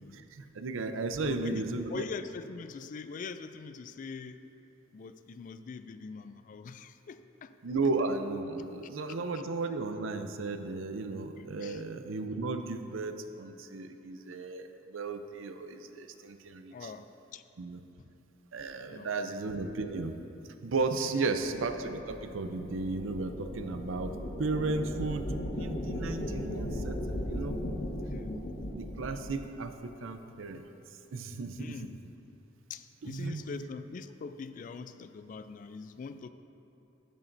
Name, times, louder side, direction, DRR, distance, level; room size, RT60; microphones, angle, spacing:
voice 1, 0.1-2.0 7.6-16.9 17.6-17.8 18.5-20.2 20.6-25.3 25.5-27.6 28.7-30.7 31.1-31.8 33.0-33.5, right 3 dB, 80° right, 8 dB, 0.5 m, -34 dB
voice 2, 1.2-4.4 4.9-7.5 9.3-9.4 11.4-11.8 16.7-17.4 18.0-18.1 18.9-19.4 21.1-21.6 28.1-28.4 31.6-31.9 32.7-36.3, left 4 dB, 40° left, 11 dB, 0.3 m, -43 dB
sound 1, 21.4-29.4, left 1 dB, 80° left, 1.0 m, -37 dB
11.0 x 10.5 x 2.6 m, 2.9 s
head